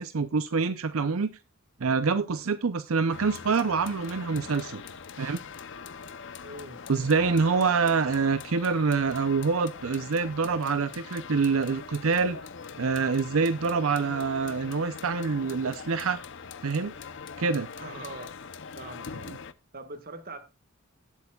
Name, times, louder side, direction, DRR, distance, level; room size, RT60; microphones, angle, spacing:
voice 1, 0.0-1.3 1.8-4.8 5.2-5.4 6.9-12.4 12.8-16.2 16.6-16.9 17.4-17.7, right 5 dB, 75° right, 0.6 m, -26 dB
sound 1, 3.1-19.5, left 5 dB, 60° left, 0.7 m, -42 dB
voice 2, 6.4-6.8 17.8-19.3 19.7-20.4, right 2 dB, 45° right, 1.6 m, -42 dB
18.0 x 8.3 x 2.3 m
head